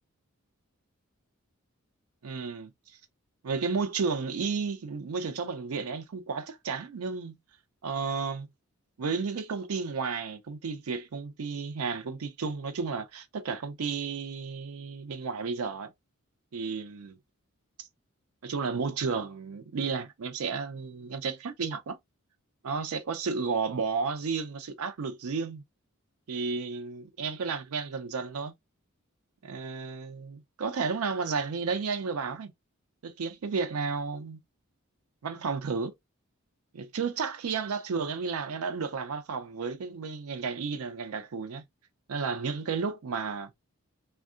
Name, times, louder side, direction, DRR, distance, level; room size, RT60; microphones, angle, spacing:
voice 1, 2.2-2.7 3.4-7.4 7.8-8.5 9.0-15.9 16.5-17.2 17.8-17.9 18.4-22.0 22.6-25.6 26.3-28.5 29.4-32.5 33.0-34.4 35.2-35.9 36.7-41.6 42.1-43.5, right 5 dB, 85° right, 0.5 m, -32 dB
3.5 x 2.2 x 2.4 m
head